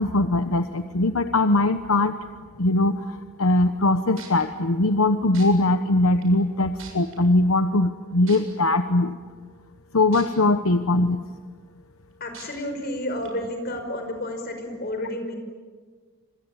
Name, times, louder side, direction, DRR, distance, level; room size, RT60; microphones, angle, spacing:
voice 1, 0.0-2.2 2.6-9.2 9.9-11.2, left 2 dB, 75° left, 9 dB, 1.1 m, -21 dB
sound 1, 3.8-3.9 4.2-4.4 5.3-5.5 6.2-6.3 6.8-7.2 8.3-8.4 10.1-10.2 10.7-10.8 12.3-12.5 13.2-13.3, right 9 dB, 65° right, 7.4 m, -42 dB
voice 2, 12.2-15.4, left 1 dB, 45° left, 6 dB, 5.5 m, -31 dB
27.0 x 25.0 x 8.8 m, 1.5 s
head